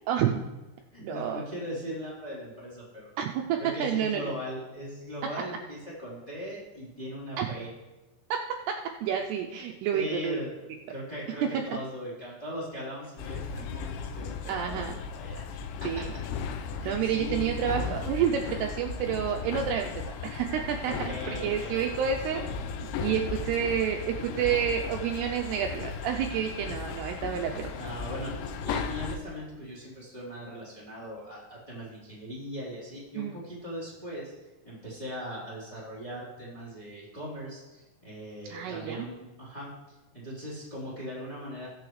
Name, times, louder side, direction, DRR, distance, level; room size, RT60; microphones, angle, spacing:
voice 1, 0.1-0.4 1.0-1.4 3.2-4.3 7.4-7.5 8.3-8.4 8.7-10.4 14.5-15.0 15.8-16.1 16.9-19.9 20.2-22.5 22.8-27.7 33.2-33.3 38.5-39.1, right 8 dB, 80° right, 2 dB, 2.5 m, -29 dB
voice 2, 0.9-3.1 3.6-7.7 9.9-16.2 16.8-17.4 20.8-22.0 26.6-26.7 27.3-28.3 28.6-34.3 34.6-39.7 40.1-41.7, equal, 10° left, -6 dB, 2.9 m, -39 dB
sound 1, 13.2-29.2, left 5 dB, 85° left, 3.0 m, -36 dB
20.5 x 7.0 x 3.2 m, 1.1 s
omnidirectional pair, 5.2 m